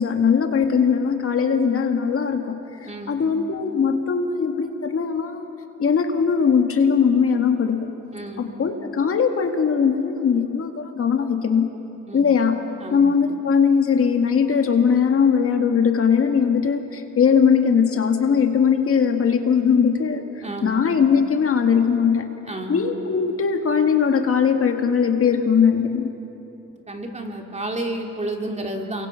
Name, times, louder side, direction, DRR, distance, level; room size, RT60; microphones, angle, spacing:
voice 1, 0.0-5.5 5.8-7.9 8.4-11.7 12.1-12.6 12.9-20.2 20.6-22.3 22.7-26.1, left 6 dB, 45° left, 5 dB, 1.8 m, -20 dB
voice 2, 2.8-3.3 8.1-8.5 12.1-12.3 12.8-13.1 20.4-20.8 22.4-22.8 26.9-29.1, right 1 dB, 20° right, 2 dB, 2.9 m, -31 dB
29.0 x 23.5 x 5.7 m, 2.9 s
cardioid pair, 90°, 30 cm